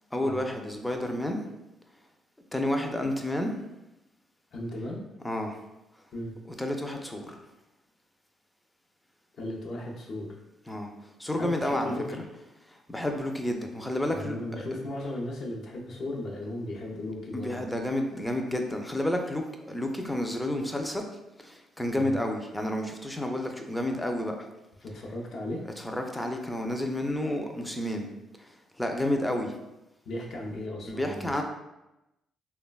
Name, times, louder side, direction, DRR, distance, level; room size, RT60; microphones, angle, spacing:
voice 1, 0.1-1.4 2.5-3.5 5.2-5.6 6.6-7.4 10.7-10.9 11.2-11.9 12.7-14.6 17.3-21.0 21.4-24.4 25.9-28.1 28.4-29.5 30.9-31.4, left 1 dB, 10° left, 3 dB, 0.4 m, -30 dB
voice 2, 4.5-5.0 6.1-6.4 9.4-10.4 11.4-12.2 14.1-17.7 21.9-22.2 24.8-25.6 30.1-31.4, left 1 dB, 65° left, -1 dB, 0.5 m, -36 dB
3.2 x 2.1 x 2.2 m, 0.95 s
cardioid pair, 90°, 0 cm